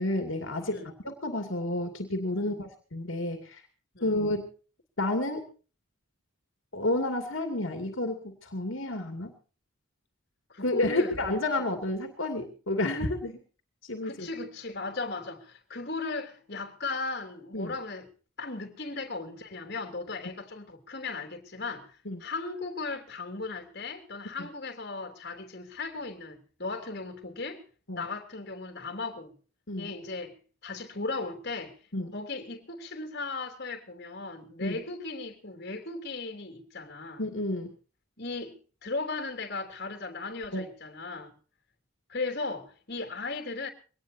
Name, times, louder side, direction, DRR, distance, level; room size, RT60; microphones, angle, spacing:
voice 1, 0.0-3.6 4.0-4.5 5.0-5.4 6.7-9.3 10.6-13.4 13.8-14.3 17.5-17.7 22.1-22.2 27.9-28.0 29.7-29.9 31.9-32.1 34.6-34.8 37.2-37.7 40.5-40.6, left 1 dB, 70° left, 2.6 m, -30 dB
voice 2, 10.5-11.2 14.0-18.1 18.4-27.6 28.0-29.3 29.8-30.4 30.6-31.8 32.1-37.2 38.2-41.3 42.1-43.7, left 3 dB, 50° left, 3.2 m, -37 dB
23.5 x 18.5 x 2.8 m
head